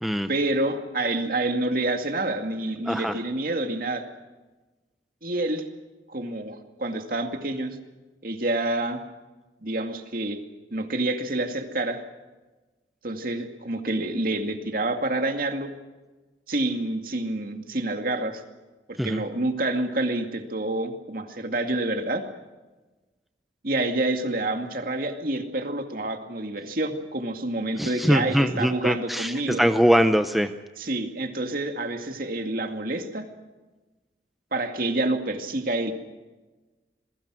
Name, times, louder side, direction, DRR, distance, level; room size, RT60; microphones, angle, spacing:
voice 1, 0.3-4.1 5.2-5.6 6.1-7.8 8.2-9.0 9.6-10.4 10.7-12.0 13.0-15.7 16.5-18.4 18.9-22.3 23.6-29.6 30.8-33.3 34.5-35.9, right 2 dB, 50° right, 5 dB, 2.3 m, -28 dB
voice 2, 2.8-3.2 19.0-19.2 27.8-30.5, equal, ahead, 7 dB, 0.7 m, -22 dB
28.0 x 21.5 x 6.3 m, 1.2 s
head